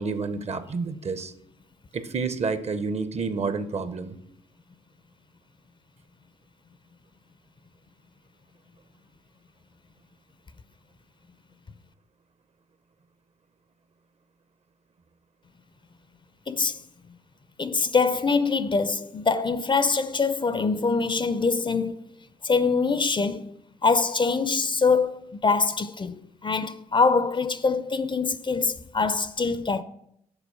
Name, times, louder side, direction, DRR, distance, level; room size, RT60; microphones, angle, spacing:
voice 1, 0.0-1.3 1.9-4.2, right 4 dB, 40° right, 0.8 m, -29 dB
voice 2, 16.5-16.8 17.6-22.0 22.4-23.5 23.8-29.8, left 4 dB, 30° left, 0.5 m, -24 dB
7.0 x 4.3 x 5.5 m
hypercardioid pair, 45°, 16 cm